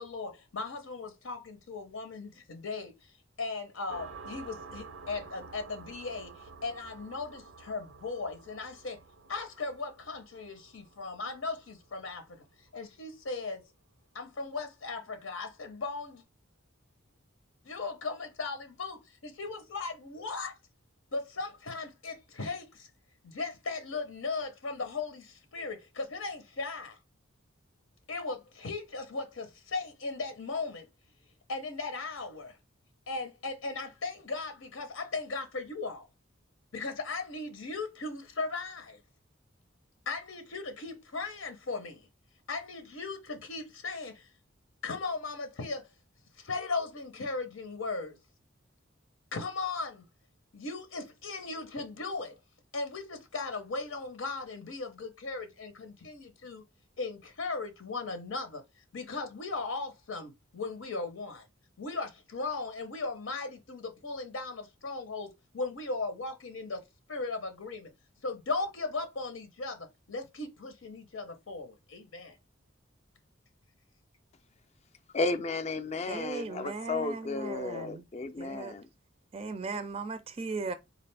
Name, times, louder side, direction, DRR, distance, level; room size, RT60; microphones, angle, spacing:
voice 1, 0.0-2.9 3.4-9.0 9.3-12.4 12.7-13.7 14.1-16.2 17.6-20.6 21.1-22.9 23.2-27.0 28.1-30.9 31.5-32.6 33.1-36.1 36.7-39.0 40.1-42.1 42.5-44.3 44.8-45.8 46.4-48.2 49.3-50.0 50.5-52.3 52.7-56.6 57.0-58.6 58.9-61.4 61.8-65.3 65.5-66.8 67.1-67.9 68.2-72.4, left 3 dB, 90° left, 0.8 m, -37 dB
sound 1, 3.9-13.1, right 4 dB, 85° right, 0.5 m, -50 dB
voice 2, 75.1-78.9, left 3 dB, 35° left, 0.4 m, -33 dB
voice 3, 76.1-78.0 78.4-78.8 79.3-80.7, right 4 dB, 30° right, 0.4 m, -37 dB
4.1 x 2.4 x 3.3 m
head